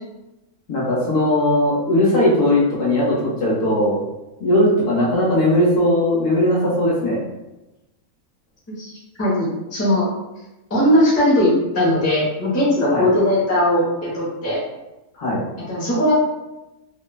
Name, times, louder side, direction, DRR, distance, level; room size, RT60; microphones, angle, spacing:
voice 1, 0.7-4.0 4.4-7.2 12.9-13.1 15.2-15.4, left 1 dB, 65° left, -6 dB, 1.1 m, -18 dB
voice 2, 9.2-10.0 10.7-14.6 15.6-16.1, left 1 dB, 15° left, -7 dB, 0.6 m, -19 dB
3.0 x 2.1 x 2.3 m, 1.0 s
omnidirectional pair, 1.5 m